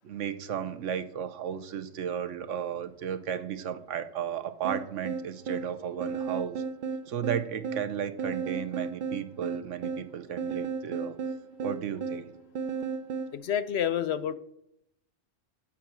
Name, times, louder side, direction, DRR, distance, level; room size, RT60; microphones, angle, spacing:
voice 1, 0.0-6.6 7.1-11.2 11.6-12.3, right 8 dB, 75° right, 11 dB, 1.1 m, -34 dB
sound 1, 4.6-13.3, right 5 dB, 50° right, 0.7 m, -34 dB
voice 2, 13.3-14.3, left 9 dB, 65° left, 13 dB, 0.8 m, -28 dB
8.6 x 7.3 x 6.1 m, 0.78 s
omnidirectional pair, 1.3 m